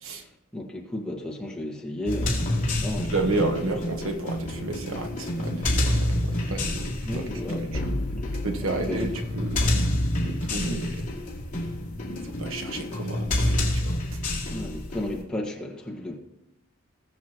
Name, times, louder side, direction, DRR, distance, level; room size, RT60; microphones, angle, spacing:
voice 1, 0.2-3.5 7.0-9.1 10.6-10.8 12.7-12.9 14.5-16.2, left 1 dB, 5° left, 1.7 m, -34 dB
sound 1, 2.1-15.2, left 1 dB, 40° left, 2.8 m, -28 dB
voice 2, 3.1-7.9 8.4-9.8 10.2-11.0 12.2-14.2, right 2 dB, 75° right, 1.3 m, -32 dB
sound 2, 4.4-13.6, left 1 dB, 55° left, 1.2 m, -39 dB
sound 3, 7.7-10.6, left 1 dB, 75° left, 1.0 m, -34 dB
20.5 x 7.2 x 3.1 m
head